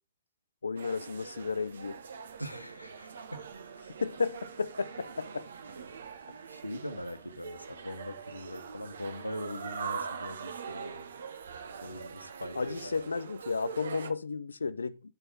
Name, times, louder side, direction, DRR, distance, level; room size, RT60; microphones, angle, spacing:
voice 1, 0.6-2.0 4.0-5.5 12.6-15.0, left 4 dB, 70° left, 0.4 m, -33 dB
sound 1, 0.8-14.1, right 6 dB, 65° right, 0.7 m, -43 dB
voice 2, 2.4-3.4 6.5-11.1 11.8-12.6 12.8-13.0, equal, 90° left, 1.0 m, -41 dB
8.8 x 4.6 x 5.3 m
figure-of-eight pair, 105°, 0 cm